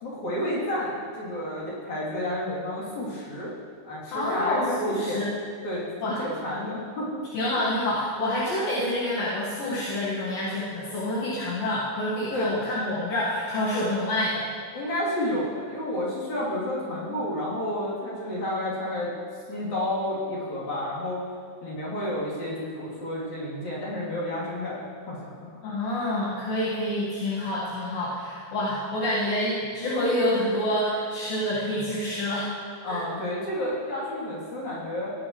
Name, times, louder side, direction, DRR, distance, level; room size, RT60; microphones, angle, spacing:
voice 1, 0.0-3.5 3.8-5.3 5.6-7.2 12.3-12.4 14.7-19.1 19.5-21.2 21.6-25.3 32.8-35.1, left 1 dB, 50° left, -8 dB, 4.4 m, -30 dB
voice 2, 4.1-5.3 6.0-6.2 7.3-14.5 25.6-32.5 32.9-33.0, left 1 dB, 70° left, -8 dB, 3.4 m, -27 dB
18.0 x 10.0 x 3.2 m, 2.1 s
omnidirectional pair, 4.4 m